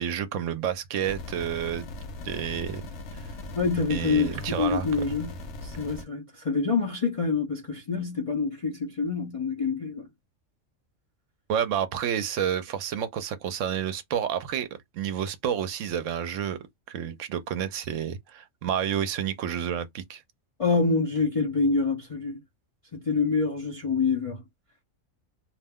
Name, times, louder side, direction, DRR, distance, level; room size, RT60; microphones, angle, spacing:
voice 1, 0.0-1.9 2.2-2.8 3.1-3.3 3.9-4.9 11.5-14.7 14.9-16.6 16.9-20.2, right 9 dB, 70° right, 0.9 m, -30 dB
sound 1, 1.0-6.0, left 2 dB, 60° left, 0.9 m, -39 dB
voice 2, 3.6-5.4 5.6-10.1 20.6-22.4 22.9-24.4, left 4 dB, 45° left, 0.4 m, -26 dB
2.5 x 2.1 x 3.4 m
omnidirectional pair, 1.4 m